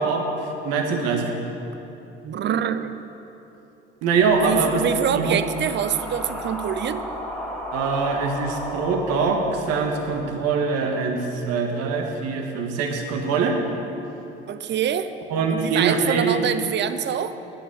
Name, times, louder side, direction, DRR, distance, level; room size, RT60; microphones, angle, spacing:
voice 1, 0.0-1.3 4.0-4.8 5.1-5.4 7.7-13.6 15.3-16.4, right 4 dB, 60° right, 3 dB, 1.6 m, -23 dB
voice 2, 2.2-2.9 4.5-7.0 14.5-15.1 15.5-17.3, right 9 dB, 40° right, 12 dB, 0.7 m, -25 dB
sound 1, 4.2-10.3, equal, ahead, 2.4 m, -34 dB
10.0 x 9.8 x 6.3 m, 3.0 s
figure-of-eight pair, 60°, 29 cm